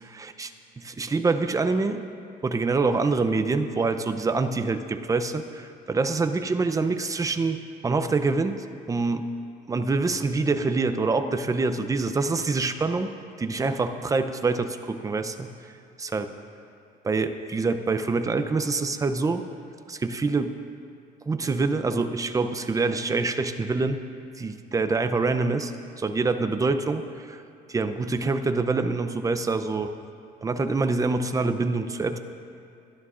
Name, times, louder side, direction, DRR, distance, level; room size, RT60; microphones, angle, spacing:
voice 1, 0.1-0.5 0.8-2.0 2.4-8.6 8.9-9.3 9.7-13.1 13.4-15.5 16.0-16.3 17.0-19.4 19.9-20.6 21.3-24.0 24.4-27.4 27.7-29.9 30.4-32.2, right 3 dB, 20° right, 9 dB, 0.7 m, -25 dB
24.0 x 11.0 x 2.6 m, 2.5 s
cardioid pair, 110°, 17 cm